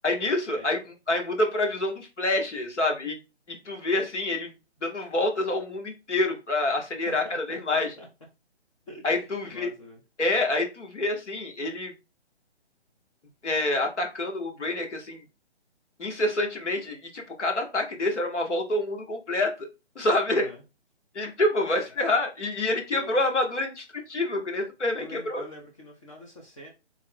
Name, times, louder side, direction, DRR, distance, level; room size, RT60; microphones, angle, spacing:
voice 1, 0.0-0.8 1.1-3.2 3.5-4.5 4.8-7.9 9.0-9.7 10.2-11.9 13.4-15.2 16.0-19.7 19.9-20.5 21.1-25.4, left 2 dB, 85° left, 3 dB, 1.2 m, -27 dB
voice 2, 7.1-8.1 8.9-10.0 20.3-20.6 21.7-21.8 22.9-23.1 25.0-26.7, equal, 30° left, 0 dB, 0.6 m, -44 dB
3.5 x 2.2 x 3.8 m, 0.27 s
hypercardioid pair, 150°, 35 cm